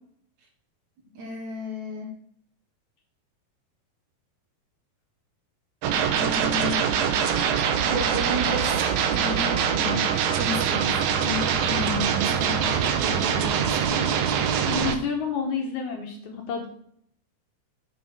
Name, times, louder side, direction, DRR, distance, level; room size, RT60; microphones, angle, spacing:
voice 1, 1.2-2.2 6.1-6.9 7.8-14.2, left 1 dB, 60° right, 2 dB, 2.4 m, -33 dB
sound 1, 5.8-15.0, right 7 dB, 80° right, 2.7 m, -24 dB
voice 2, 14.6-16.7, left 6 dB, 70° left, 2 dB, 2.1 m, -29 dB
7.3 x 6.1 x 6.1 m, 0.65 s
omnidirectional pair, 4.3 m